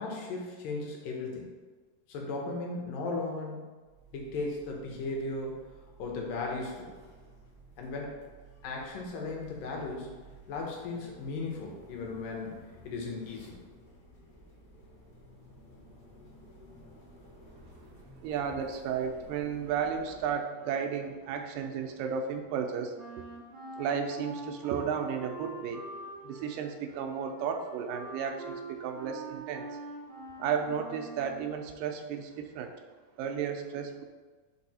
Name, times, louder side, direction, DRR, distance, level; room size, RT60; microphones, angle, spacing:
voice 1, 0.0-1.5 2.1-3.6 4.1-5.5 6.0-6.9 7.8-8.1 8.6-10.1 10.5-12.5 12.8-13.6, left 3 dB, 85° left, 0 dB, 2.8 m, -36 dB
sound 1, 3.8-20.3, right 1 dB, 50° left, 1.3 m, -55 dB
voice 2, 18.2-23.0 23.8-25.8 26.2-29.7 30.4-32.7 33.2-34.0, right 7 dB, 90° right, 5 dB, 2.4 m, -33 dB
Wind instrument woodwind instrument, 22.9-31.5, right 2 dB, 45° right, 1.4 m, -44 dB
5.6 x 4.6 x 4.2 m, 1.3 s
omnidirectional pair, 3.8 m